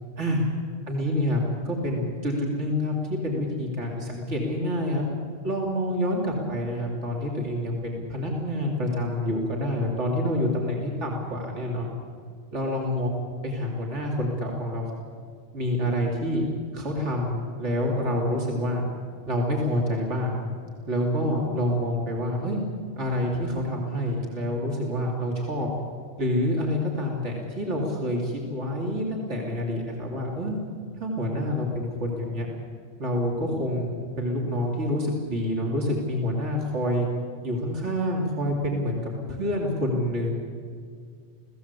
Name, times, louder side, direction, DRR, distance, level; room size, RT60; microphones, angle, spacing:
voice 1, 0.9-5.0 5.4-11.9 12.5-13.1 13.4-14.9 15.5-16.4 16.7-18.9 19.3-20.4 20.9-22.6 23.0-25.7 26.2-30.6 31.0-32.5 33.0-37.1 37.4-40.3, left 1 dB, 65° right, -1 dB, 3.6 m, -27 dB
28.5 x 18.0 x 8.4 m, 2.1 s
omnidirectional pair, 1.3 m